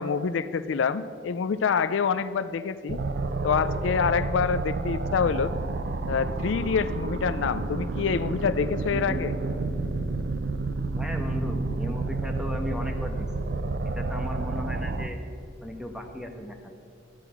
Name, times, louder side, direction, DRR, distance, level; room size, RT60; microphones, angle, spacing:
voice 1, 0.0-3.0 3.4-5.5 6.1-9.3, left 6 dB, 80° left, 12 dB, 0.4 m, -26 dB
sound 1, 2.9-15.1, right 3 dB, 60° right, 0.6 m, -30 dB
sound 2, 8.9-11.9, equal, 35° left, 1.5 m, -45 dB
voice 2, 10.9-13.3 13.9-15.2 15.6-16.6, equal, 5° right, 3 dB, 1.1 m, -35 dB
12.5 x 9.1 x 5.9 m, 2.4 s
head